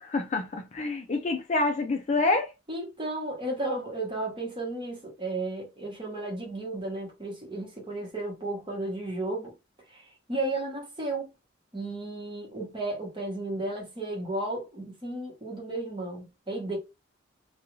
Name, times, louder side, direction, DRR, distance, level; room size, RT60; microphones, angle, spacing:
voice 1, 0.0-2.5, left 3 dB, 35° left, 0.4 m, -27 dB
voice 2, 2.7-9.5 9.9-11.3 11.7-16.8, right 2 dB, 25° right, 1.0 m, -34 dB
2.4 x 2.3 x 3.0 m
head